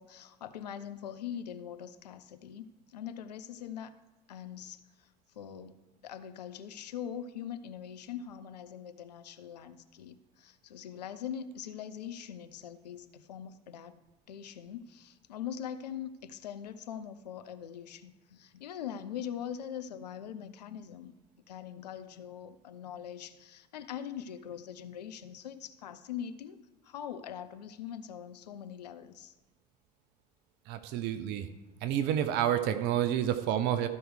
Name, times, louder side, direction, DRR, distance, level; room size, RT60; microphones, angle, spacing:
voice 1, 0.0-3.9 4.3-5.1 5.3-13.9 14.3-21.1 21.5-29.3, left 9 dB, 75° left, 11 dB, 0.6 m, -42 dB
voice 2, 30.7-31.5 31.8-33.9, right 10 dB, 55° right, 10 dB, 0.7 m, -29 dB
13.5 x 4.6 x 4.8 m, 1.0 s
figure-of-eight pair, 65°, 21 cm